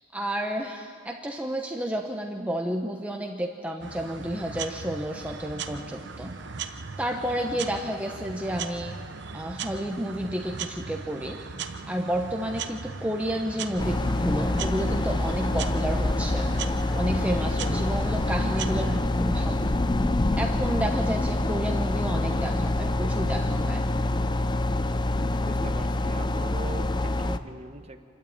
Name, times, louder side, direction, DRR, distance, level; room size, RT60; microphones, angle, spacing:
voice 1, 0.0-6.3 7.0-9.0 9.3-11.4 11.9-16.5 17.0-19.7 20.1-23.9, equal, 5° right, 2 dB, 0.8 m, -31 dB
sound 1, 3.8-19.0, right 5 dB, 55° right, 0.9 m, -38 dB
sound 2, 13.8-27.4, left 2 dB, 20° left, 0.5 m, -26 dB
voice 2, 25.5-28.0, right 2 dB, 30° right, 7 dB, 1.2 m, -40 dB
26.5 x 12.5 x 8.8 m, 2.2 s
head